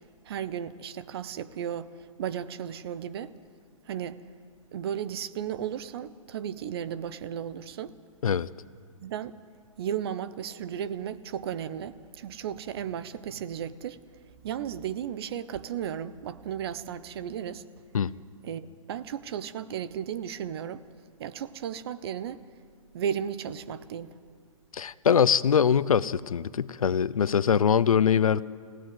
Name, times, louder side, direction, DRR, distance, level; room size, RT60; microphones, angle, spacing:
voice 1, 0.2-1.9 2.2-3.3 3.9-4.2 4.7-7.9 9.0-9.3 9.8-14.0 14.4-17.6 18.4-20.8 21.2-22.4 22.9-24.2, right 9 dB, 45° right, 14 dB, 1.0 m, -34 dB
voice 2, 24.7-28.4, left 7 dB, 85° left, 18 dB, 0.7 m, -23 dB
29.0 x 16.0 x 7.9 m, 2.1 s
hypercardioid pair, 145°, 18 cm